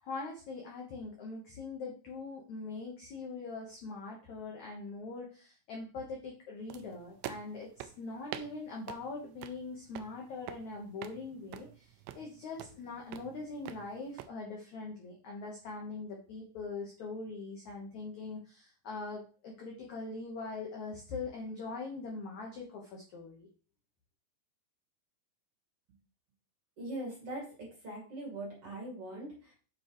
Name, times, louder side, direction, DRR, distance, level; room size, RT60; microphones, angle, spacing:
voice 1, 0.0-23.5, left 3 dB, 70° left, -1 dB, 1.8 m, -42 dB
sound 1, 6.7-14.3, right 12 dB, 85° right, 2.8 m, -48 dB
voice 2, 26.8-29.5, right 1 dB, 40° right, -3 dB, 2.7 m, -41 dB
7.5 x 7.3 x 3.1 m, 0.37 s
omnidirectional pair, 5.3 m